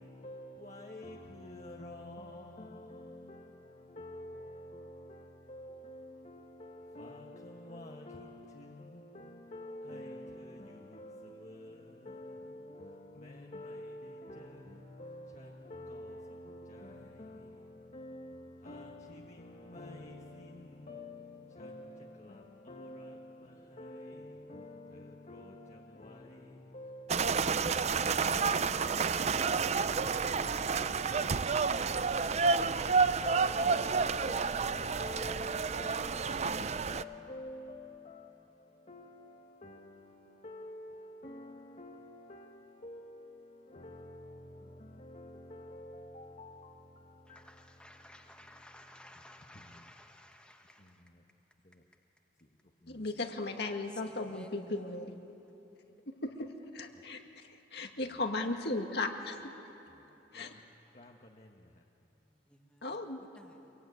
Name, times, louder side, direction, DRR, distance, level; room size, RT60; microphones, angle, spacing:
voice 1, 0.0-50.0 50.8-51.2 51.6-51.9 52.4-52.6 52.8-53.1 56.9-57.0 58.0-58.2 59.9-60.6 60.9-61.8, left 1 dB, 40° left, 1.4 m, -49 dB
sound 1, 27.1-37.0, right 5 dB, 40° right, 0.5 m, -30 dB
voice 2, 47.3-51.0 53.2-53.3 54.0-54.7 62.5-63.0 63.3-63.7, left 1 dB, 5° left, 1.5 m, -56 dB
voice 3, 52.9-55.1 56.2-56.5 56.7-57.2 57.5-59.5 60.3-60.5 62.8-63.2, left 2 dB, 65° left, 2.1 m, -36 dB
25.5 x 22.5 x 9.6 m
head